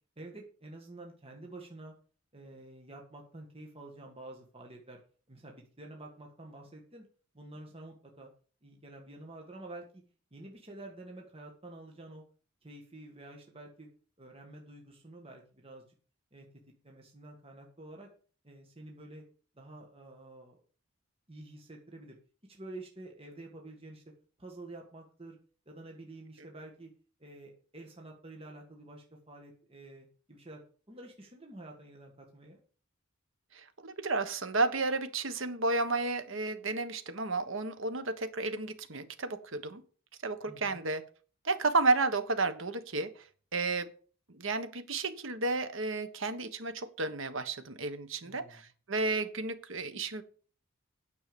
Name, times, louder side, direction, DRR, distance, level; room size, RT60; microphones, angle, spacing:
voice 1, 0.2-1.9 2.3-5.0 5.3-7.1 7.3-8.3 8.6-10.0 10.3-12.2 12.6-13.9 14.2-15.8 16.3-16.5 16.8-18.1 18.4-19.2 19.6-20.6 21.3-22.2 22.5-24.0 24.4-25.4 25.7-26.9 27.2-30.6 30.9-32.6 40.5-40.8 48.2-48.6, right 2 dB, 25° right, 1 dB, 1.8 m, -49 dB
voice 2, 33.5-39.8 40.2-41.0 41.4-43.3 43.5-43.9 44.3-50.2, right 3 dB, 60° right, 10 dB, 1.4 m, -32 dB
9.6 x 6.9 x 7.0 m, 0.41 s
head